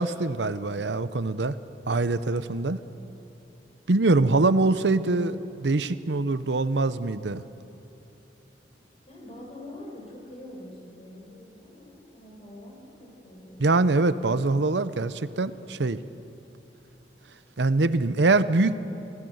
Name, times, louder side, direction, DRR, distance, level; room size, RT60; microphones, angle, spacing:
voice 1, 0.0-1.5 1.9-2.8 3.9-7.4 13.6-16.0 17.6-18.7, right 3 dB, 80° right, 13 dB, 0.8 m, -23 dB
voice 2, 9.1-13.7, left 1 dB, 35° left, 0 dB, 5.9 m, -45 dB
28.5 x 18.0 x 8.0 m, 3.0 s
head